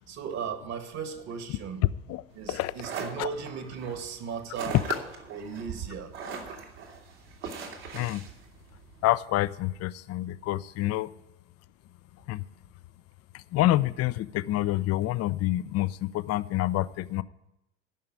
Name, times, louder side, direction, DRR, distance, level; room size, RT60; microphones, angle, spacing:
voice 1, 0.0-1.8 2.3-4.8 5.3-6.1, right 7 dB, 50° right, 7 dB, 1.9 m, -36 dB
sound 1, 2.4-9.1, right 5 dB, 65° right, 2.5 m, -40 dB
voice 2, 9.0-11.1 12.3-12.4 13.3-17.2, left 15 dB, 45° left, 16 dB, 0.6 m, -27 dB
13.0 x 5.7 x 9.1 m, 0.87 s
hypercardioid pair, 70°, 36 cm